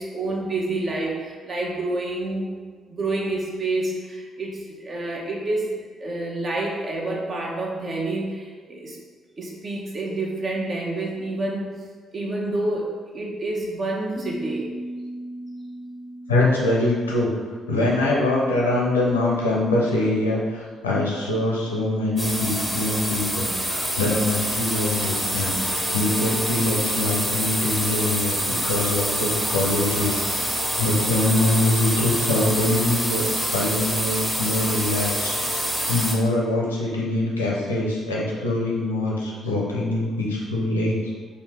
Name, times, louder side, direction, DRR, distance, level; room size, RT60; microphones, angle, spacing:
voice 1, 0.0-2.6 2.9-5.7 6.0-9.0 9.4-11.7 12.1-14.7, right 2 dB, 45° right, -2 dB, 0.9 m, -28 dB
sound 1, 14.2-19.0, right 1 dB, 35° left, 0.6 m, -38 dB
voice 2, 16.3-17.3 17.7-30.3 30.8-35.6 35.9-41.0, left 2 dB, 85° left, -4 dB, 0.7 m, -24 dB
sound 2, 22.2-36.1, right 1 dB, 15° right, 1.1 m, -26 dB
4.2 x 2.8 x 3.3 m, 1.5 s
figure-of-eight pair, 45°, 0 cm